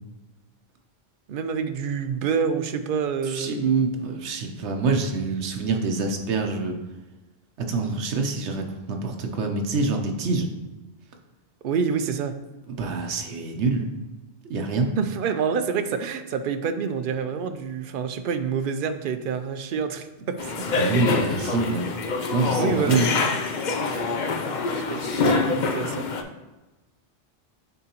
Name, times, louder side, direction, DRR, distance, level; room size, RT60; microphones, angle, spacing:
voice 1, 1.3-3.6 11.6-12.4 15.0-20.9 22.6-23.1 23.8-24.0 24.7-26.1, right 6 dB, 60° right, 9 dB, 0.6 m, -27 dB
voice 2, 3.3-6.8 7.6-10.5 12.7-13.9 14.5-14.9 20.8-21.9 22.3-23.1, right 4 dB, 85° right, 4 dB, 1.1 m, -25 dB
sound 1, 20.4-26.2, left 4 dB, 55° left, 0.6 m, -25 dB
9.2 x 3.8 x 2.9 m, 1.1 s
omnidirectional pair, 1.1 m